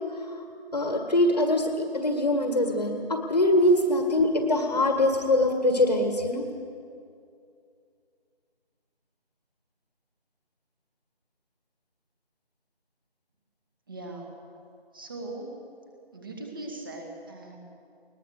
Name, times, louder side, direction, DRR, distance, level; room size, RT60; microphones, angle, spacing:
voice 1, 0.7-6.4, left 1 dB, 40° left, 4 dB, 1.9 m, -23 dB
voice 2, 13.9-14.3 14.9-15.6 16.1-17.6, right 2 dB, 20° right, 1 dB, 2.2 m, -39 dB
21.0 x 20.5 x 6.6 m, 2.4 s
figure-of-eight pair, 170°, 31 cm